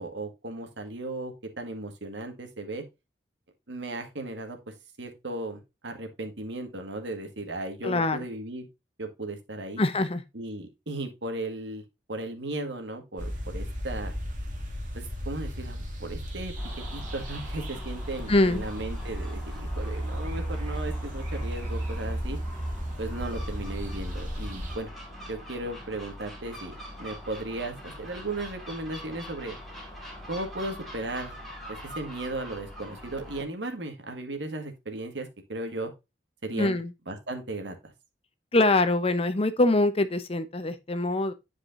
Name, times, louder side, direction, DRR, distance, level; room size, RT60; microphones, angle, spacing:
voice 1, 0.0-2.8 3.7-4.6 5.0-8.6 9.0-9.8 10.3-11.8 12.1-14.1 14.9-16.5 16.9-22.4 23.0-24.9 25.3-29.5 30.3-31.3 31.7-35.9 36.4-36.8 37.1-37.9, right 2 dB, 85° right, 1.7 m, -36 dB
voice 2, 7.8-8.2 9.8-10.2 18.3-18.6 36.5-36.9 38.5-41.3, left 2 dB, 35° left, 0.8 m, -24 dB
sound 1, 13.2-24.8, equal, 45° right, 2.1 m, -34 dB
Gull seagull, 16.6-33.4, equal, ahead, 3.4 m, -43 dB
10.5 x 4.9 x 2.6 m
head